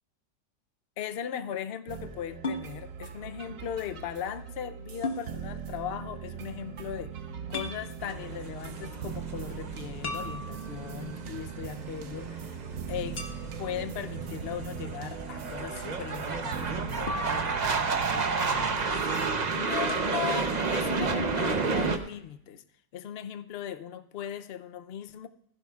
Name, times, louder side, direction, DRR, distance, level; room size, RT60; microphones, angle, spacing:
voice 1, 1.0-7.1 7.5-12.6 12.9-13.2 13.6-19.1 19.5-22.6 22.9-25.3, left 9 dB, 60° left, 10 dB, 0.6 m, -38 dB
sound 1, 1.9-19.6, right 7 dB, 60° right, 1.0 m, -40 dB
sound 2, 2.4-2.7 5.0-5.3 7.5-7.8 10.0-11.0 13.2-13.8 17.1-18.0 19.9-20.3, left 2 dB, 40° left, 1.4 m, -36 dB
sound 3, 8.0-22.0, right 4 dB, 40° right, 0.7 m, -32 dB
16.0 x 15.5 x 2.4 m, 0.73 s
omnidirectional pair, 1.8 m